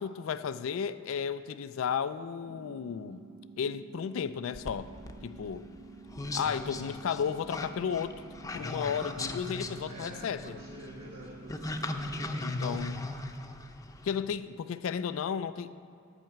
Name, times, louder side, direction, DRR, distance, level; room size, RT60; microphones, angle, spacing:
voice 1, 0.0-3.2 3.6-4.9 5.2-5.7 6.3-8.2 8.5-10.6 12.4-13.1 14.0-15.7, left 7 dB, 75° left, 13 dB, 0.3 m, -33 dB
sound 1, 2.5-12.5, right 4 dB, 40° right, 0.5 m, -50 dB
sound 2, 4.5-14.1, left 2 dB, 15° left, 0.6 m, -38 dB
voice 2, 9.9-12.7, equal, 80° right, -5 dB, 1.7 m, -48 dB
10.5 x 5.7 x 8.5 m, 2.6 s
head